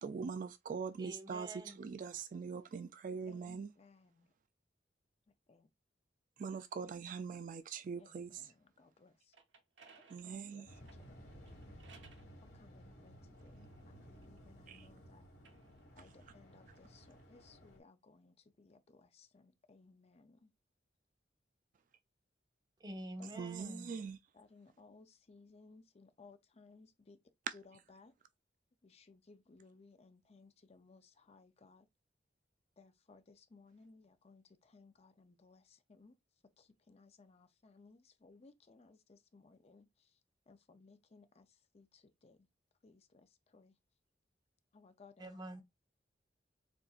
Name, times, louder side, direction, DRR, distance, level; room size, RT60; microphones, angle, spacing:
voice 1, 0.0-3.7 6.4-8.5 10.1-10.8 14.7-14.9 23.4-24.2 27.5-27.6, right 5 dB, 45° right, 0.3 m, -42 dB
voice 2, 1.0-1.8 2.1-2.2 22.8-24.0 45.2-45.6, right 1 dB, 25° right, 0.7 m, -47 dB
voice 3, 3.3-4.3 5.5-5.7 8.0-9.3 10.2-10.7 11.0-11.7 12.4-13.7 14.1-15.2 15.9-20.5 23.2-23.8 24.3-27.2 27.5-28.1 28.8-31.9 32.8-36.2 36.6-40.2 40.5-42.5 42.8-43.7 44.7-45.4, left 3 dB, 35° left, 0.5 m, -62 dB
sound 1, 9.1-12.3 13.1-14.7 15.3-17.6, right 5 dB, 80° right, 0.9 m, -65 dB
Waves surf, 10.6-17.8, equal, 60° left, 1.6 m, -56 dB
6.8 x 2.5 x 2.4 m
head